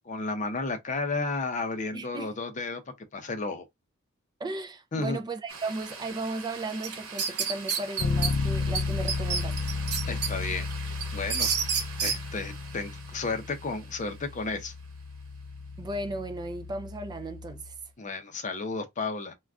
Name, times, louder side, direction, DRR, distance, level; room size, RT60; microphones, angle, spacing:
voice 1, 0.0-3.7 4.9-5.2 10.1-10.7 11.1-11.5 12.0-14.7 18.0-19.3, left 3 dB, 35° left, 0.5 m, -32 dB
voice 2, 1.9-2.3 4.4-9.6 15.8-17.7, right 2 dB, 20° right, 0.3 m, -35 dB
sound 1, 5.5-15.8, right 5 dB, 80° right, 0.9 m, -45 dB
sound 2, 6.8-8.3 8.7-8.8 9.1-10.3 10.7-12.2, right 6 dB, 55° right, 0.8 m, -28 dB
Bass guitar, 8.0-17.8, left 4 dB, 85° left, 0.4 m, -33 dB
2.4 x 2.2 x 3.4 m
head